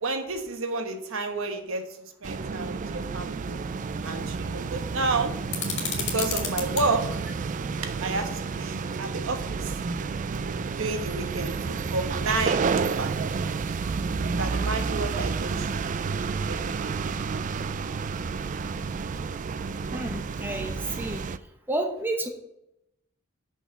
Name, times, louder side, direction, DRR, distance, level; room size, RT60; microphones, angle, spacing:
voice 1, 0.0-1.8 2.2-3.6 4.0-5.3 6.0-7.2 7.8-9.8 10.8-13.1 14.4-15.8 16.5-16.9, right 3 dB, 65° right, 5 dB, 1.2 m, -31 dB
sound 1, 2.2-21.4, right 5 dB, 35° right, 0.3 m, -30 dB
sound 2, 5.5-6.9, left 6 dB, 60° left, 2.3 m, -31 dB
voice 2, 19.9-21.2 21.7-22.3, right 1 dB, 10° right, 3 dB, 1.0 m, -30 dB
6.2 x 5.8 x 7.0 m, 0.84 s
head